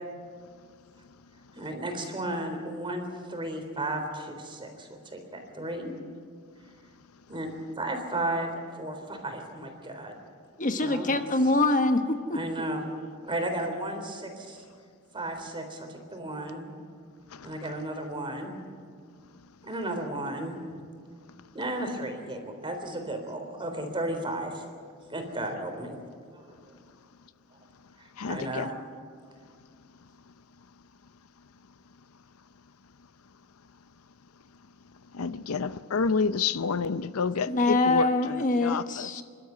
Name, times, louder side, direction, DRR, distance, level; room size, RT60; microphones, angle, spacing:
voice 1, 1.6-5.9 7.3-10.1 10.8-11.2 12.3-12.8 13.2-14.6 15.1-16.7 17.4-18.6 19.6-20.6 21.5-24.6 25.1-26.0 26.3-26.6 28.2-28.7, right 1 dB, 25° right, 5 dB, 3.7 m, -34 dB
voice 2, 10.6-12.4 37.5-39.2, left 2 dB, 40° left, 7 dB, 1.2 m, -24 dB
voice 3, 28.2-28.7 35.1-38.1 38.6-39.2, left 5 dB, 80° left, 14 dB, 0.6 m, -29 dB
27.5 x 12.5 x 9.5 m, 2.1 s
head